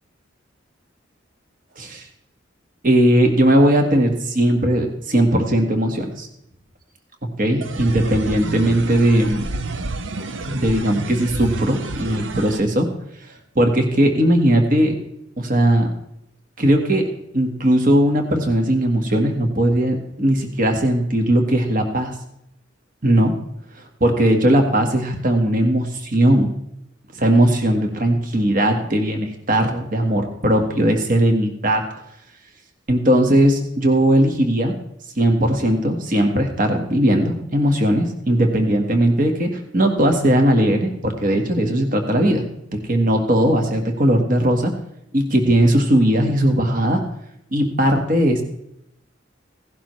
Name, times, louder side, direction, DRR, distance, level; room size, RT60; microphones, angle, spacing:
voice 1, 2.8-6.3 7.4-9.4 10.4-12.9 13.5-14.9 15.4-15.9 16.6-17.0 17.3-22.2 23.0-23.3 23.8-26.5 27.1-31.8 32.9-34.7 35.2-44.7 45.1-47.0 47.5-48.4, right 1 dB, 45° right, 4 dB, 1.6 m, -18 dB
sound 1, 7.6-12.6, right 3 dB, 85° right, 0.8 m, -29 dB
16.5 x 11.5 x 3.2 m, 0.78 s
head